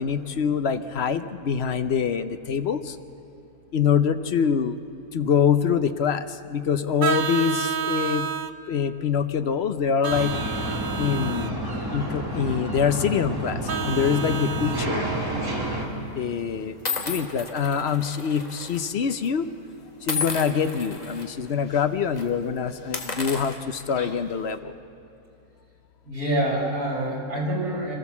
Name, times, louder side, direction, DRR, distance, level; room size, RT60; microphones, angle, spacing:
voice 1, 0.0-2.9 3.7-4.8 5.1-6.2 6.5-8.3 8.7-10.3 11.0-11.6 11.9-15.1 16.2-16.7 17.1-19.5 20.1-24.7, left 7 dB, 55° left, 10 dB, 0.8 m, -24 dB
Vehicle horn car horn honking, 7.0-8.5 10.0-11.5 13.7-14.9, right 7 dB, 55° right, 0.5 m, -29 dB
sound 1, 10.1-15.9, right 1 dB, 15° right, 2.5 m, -30 dB
sound 2, 15.2-15.5 16.2-16.3 16.9-18.8 19.1-19.3 20.1-21.2 21.7-21.8 22.1-22.3 22.8-24.4, left 4 dB, 30° left, 1.6 m, -33 dB
voice 2, 26.0-28.0, right 1 dB, 75° right, -3 dB, 5.0 m, -26 dB
26.5 x 14.5 x 7.1 m, 2.9 s
omnidirectional pair, 1.6 m